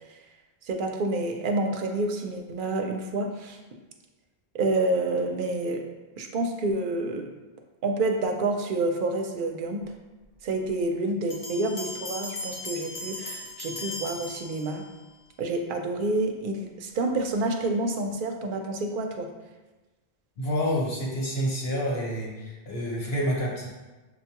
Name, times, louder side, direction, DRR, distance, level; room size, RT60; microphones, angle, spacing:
voice 1, 0.7-3.6 4.5-5.8 6.2-7.3 7.8-9.8 10.4-14.8 15.4-19.3, right 2 dB, 60° right, 4 dB, 0.7 m, -28 dB
sound 1, 11.3-15.1, left 2 dB, 55° left, 0.8 m, -38 dB
voice 2, 20.4-23.7, equal, 75° left, -4 dB, 1.2 m, -28 dB
6.5 x 2.2 x 2.8 m, 1.2 s
omnidirectional pair, 1.0 m